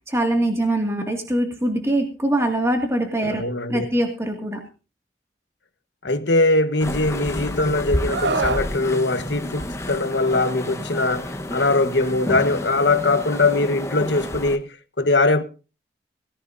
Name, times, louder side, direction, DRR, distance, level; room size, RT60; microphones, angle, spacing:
voice 1, 0.1-4.6, right 1 dB, 15° right, 2.2 m, -23 dB
voice 2, 3.2-3.9 6.0-15.4, left 2 dB, 80° left, 1.4 m, -21 dB
sound 1, 6.8-14.6, left 1 dB, 15° left, 1.2 m, -30 dB
Screaming, 8.1-8.7 10.1-10.4, right 3 dB, 90° right, 1.2 m, -24 dB
18.0 x 16.5 x 2.7 m
head